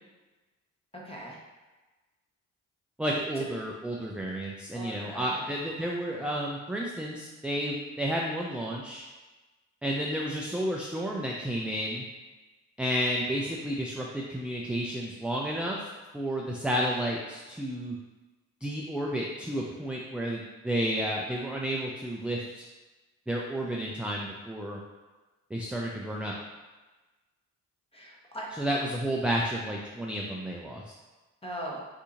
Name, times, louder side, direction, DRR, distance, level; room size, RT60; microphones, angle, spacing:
voice 1, 1.0-1.4 4.7-5.5 27.9-28.5 31.4-31.8, right 1 dB, 15° left, -2 dB, 1.0 m, -39 dB
voice 2, 3.0-9.0 9.8-12.0 12.8-15.9 16.1-17.9 18.6-22.6 23.3-24.8 25.5-26.3 28.5-30.8, equal, 5° right, -2 dB, 0.3 m, -31 dB
2.7 x 2.7 x 3.7 m, 1.2 s
supercardioid pair, 60°, 34 cm